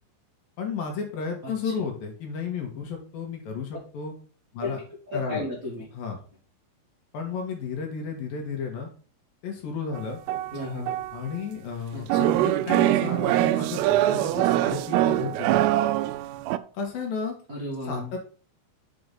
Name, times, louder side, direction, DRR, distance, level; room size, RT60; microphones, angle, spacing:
voice 1, 0.6-4.1 4.5-4.8 5.1-5.4 5.9-6.2 7.1-8.9 9.4-10.2 11.1-15.6 16.7-17.3 17.8-18.2, left 5 dB, 65° left, 2 dB, 2.7 m, -33 dB
voice 2, 1.4-1.7 4.6-4.7 5.1-5.8 10.5-10.9 11.9-12.3 17.5-18.1, left 2 dB, 50° right, -4 dB, 0.9 m, -33 dB
sound 1, 10.0-11.4 12.1-16.6, right 14 dB, 85° right, 2.5 m, -23 dB
6.9 x 4.8 x 5.3 m, 0.39 s
omnidirectional pair, 5.0 m